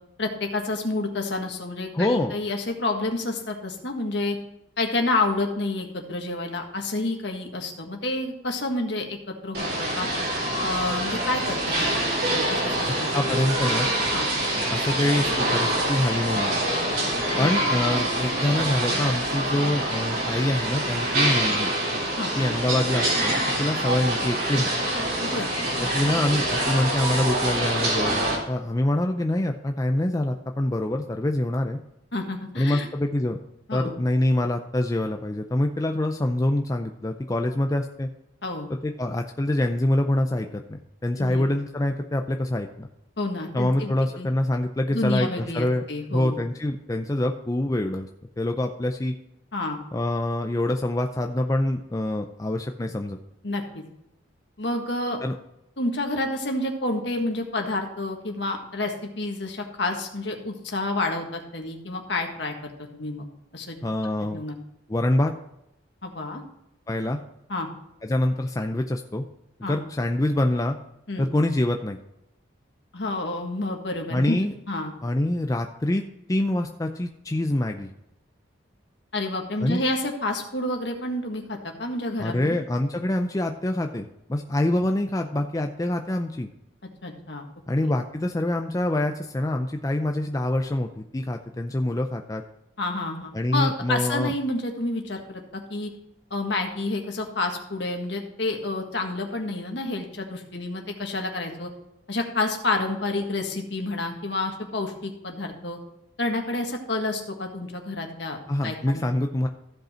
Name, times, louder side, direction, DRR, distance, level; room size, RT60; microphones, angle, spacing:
voice 1, 0.2-4.4 4.8-10.1 10.6-13.4 14.1-14.3 17.3-17.6 22.2-22.3 25.2-25.5 32.1-32.9 33.7-34.0 38.4-38.7 41.2-41.4 43.2-44.3 44.9-46.4 49.5-49.8 53.4-53.8 54.6-55.2 55.8-63.3 63.5-63.8 64.3-64.6 66.0-66.4 67.5-67.7 69.6-69.8 71.1-71.3 72.9-74.4 74.7-74.9 79.1-82.6 87.0-87.4 87.8-87.9 92.8-95.9 96.3-101.7 102.1-105.8 106.2-109.0, left 2 dB, 60° left, 2 dB, 1.7 m, -29 dB
voice 2, 1.9-2.3 13.1-13.9 14.7-16.5 17.4-21.7 22.4-24.7 25.8-31.8 32.6-33.4 33.7-38.1 38.7-42.9 43.5-45.8 46.1-48.1 48.4-49.1 49.9-53.2 55.2-55.3 63.8-64.4 64.9-65.3 66.9-67.2 68.0-69.2 69.6-70.8 71.2-72.0 74.1-74.5 75.0-76.0 76.3-77.9 79.6-79.8 82.2-86.5 87.7-92.4 93.3-94.3 108.5-109.5, left 1 dB, 20° left, 4 dB, 0.4 m, -25 dB
sound 1, 9.5-28.4, right 1 dB, 50° right, 3.5 m, -25 dB
14.5 x 5.3 x 4.3 m, 0.84 s
head